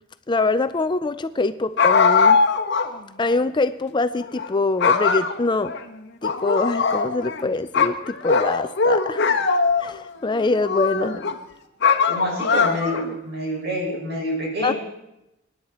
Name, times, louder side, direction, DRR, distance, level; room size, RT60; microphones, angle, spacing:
voice 1, 0.3-2.4 3.2-5.7 6.2-9.3 9.8-11.2 14.6-14.7, left 3 dB, 25° left, 12 dB, 0.4 m, -24 dB
sound 1, 1.8-2.9 3.3-3.4 4.2-4.5 4.8-5.8 6.2-7.4 7.7-10.0 10.5-11.3 11.8-13.1, left 5 dB, 60° left, 1.2 m, -20 dB
voice 2, 12.0-14.7, equal, 55° right, -2 dB, 6.1 m, -27 dB
24.0 x 10.5 x 4.3 m, 0.90 s
head